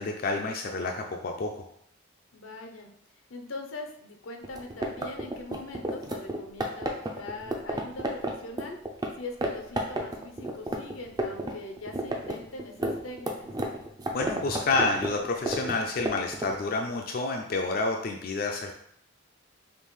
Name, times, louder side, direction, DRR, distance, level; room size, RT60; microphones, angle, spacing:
voice 1, 0.0-1.6 14.1-18.7, left 3 dB, 45° left, 2 dB, 0.3 m, -29 dB
voice 2, 2.3-2.9 3.3-8.8 9.1-13.5, left 2 dB, 90° left, 3 dB, 0.7 m, -42 dB
sound 1, 4.4-9.1 9.4-9.5 9.8-11.5 11.8-16.5, right 1 dB, 20° right, 0.4 m, -31 dB
5.3 x 2.4 x 3.1 m, 0.70 s
head